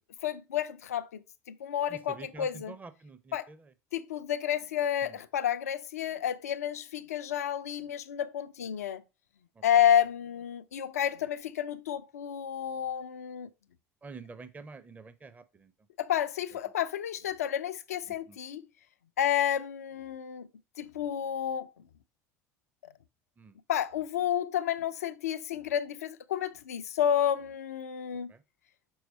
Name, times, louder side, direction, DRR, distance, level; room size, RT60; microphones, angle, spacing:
voice 1, 0.2-2.8 3.3-3.5 3.9-9.0 9.6-13.5 16.0-18.6 19.2-20.5 20.8-21.7 23.7-28.3, left 10 dB, 70° left, 0.5 m, -30 dB
voice 2, 1.9-3.6 5.0-5.1 14.0-15.7 18.3-18.4 23.4-23.5 28.3-28.4, right 4 dB, 20° right, 0.7 m, -47 dB
6.3 x 4.6 x 4.0 m
figure-of-eight pair, 65°, 8 cm